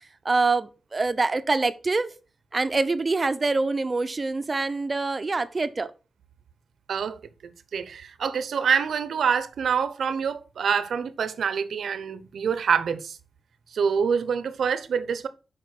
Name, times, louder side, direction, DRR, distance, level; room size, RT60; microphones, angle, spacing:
voice 1, 0.2-2.1 2.5-5.9, right 3 dB, 35° right, 0.6 m, -25 dB
voice 2, 6.9-7.2 7.7-13.2 13.7-15.3, right 6 dB, 85° right, 0.8 m, -26 dB
7.5 x 5.0 x 5.9 m
wide cardioid pair, 100°, 0 cm